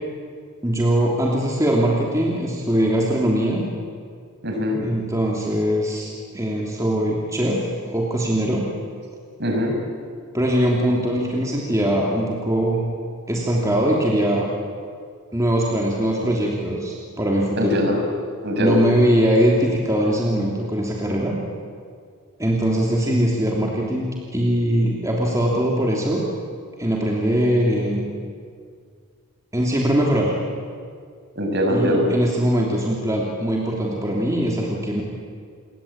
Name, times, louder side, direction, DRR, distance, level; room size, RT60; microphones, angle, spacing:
voice 1, 0.6-3.7 4.8-8.7 10.3-12.8 13.3-14.5 15.3-17.8 18.6-21.4 22.4-24.1 24.3-26.2 26.8-28.1 29.5-30.3 31.7-35.0, equal, 15° right, -2 dB, 3.1 m, -21 dB
voice 2, 4.4-4.8 9.4-9.7 17.6-18.0 18.4-18.8 31.4-32.0, equal, 50° right, 2 dB, 5.8 m, -21 dB
29.0 x 22.5 x 8.8 m, 2.1 s
head